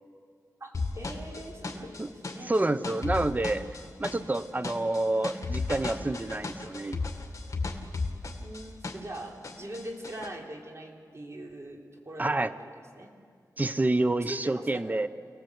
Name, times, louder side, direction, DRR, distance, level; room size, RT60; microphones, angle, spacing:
voice 1, 0.6-2.0 2.3-2.5 8.4-13.1 14.3-15.0, right 1 dB, 45° right, 1 dB, 3.6 m, -42 dB
sound 1, 0.7-9.2 9.4-10.3, left 3 dB, 50° left, 2.4 m, -35 dB
voice 2, 2.5-3.6 4.0-7.0 12.2-12.5 13.6-15.1, right 2 dB, 25° right, 12 dB, 0.8 m, -28 dB
27.5 x 19.0 x 8.1 m, 2.2 s
wide cardioid pair, 85°, 7 cm